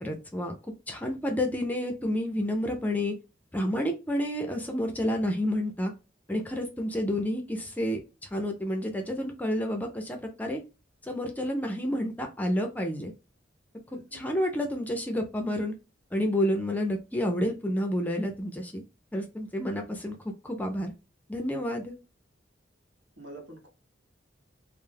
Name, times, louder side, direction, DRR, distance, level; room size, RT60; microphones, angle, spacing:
voice 1, 0.0-0.5 0.9-3.1 3.5-5.9 6.3-10.6 11.0-13.1 14.1-15.7 16.1-18.8 19.1-20.9 21.3-21.9, equal, 10° left, 0.4 m, -30 dB
voice 2, 13.9-14.2 23.2-23.7, right 2 dB, 75° right, 0.9 m, -46 dB
2.2 x 2.0 x 3.2 m
head